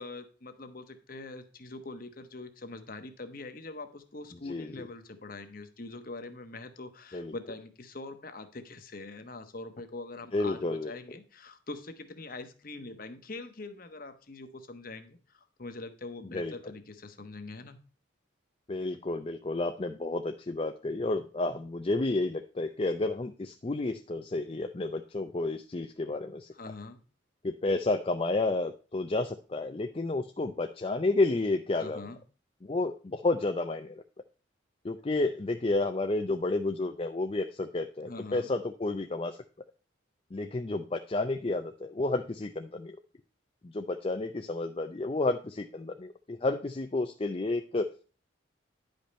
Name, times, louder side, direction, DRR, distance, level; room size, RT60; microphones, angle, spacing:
voice 1, 0.0-17.8 26.5-27.0 31.8-32.2 38.1-38.5, left 3 dB, 45° left, 8 dB, 1.1 m, -43 dB
voice 2, 10.3-10.9 16.2-16.5 18.7-26.5 27.4-32.0 32.6-34.0 34.8-39.4 40.3-43.0 43.6-47.9, left 2 dB, 25° left, 6 dB, 0.4 m, -31 dB
10.5 x 5.3 x 4.2 m, 0.37 s
head